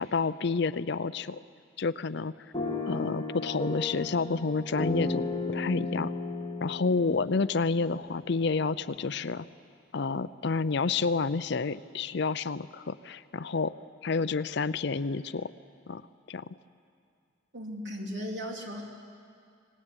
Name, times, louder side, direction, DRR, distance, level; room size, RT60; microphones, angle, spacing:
voice 1, 0.0-1.4 1.8-2.3 2.9-6.1 6.6-9.5 9.9-13.7 14.0-15.5 15.9-16.0 16.3-16.5, left 4 dB, 60° left, 15 dB, 0.6 m, -29 dB
sound 1, 2.5-8.6, left 2 dB, 20° left, 2.7 m, -34 dB
voice 2, 17.5-18.8, equal, 60° right, 0 dB, 3.5 m, -36 dB
25.0 x 19.0 x 9.8 m, 2.3 s
head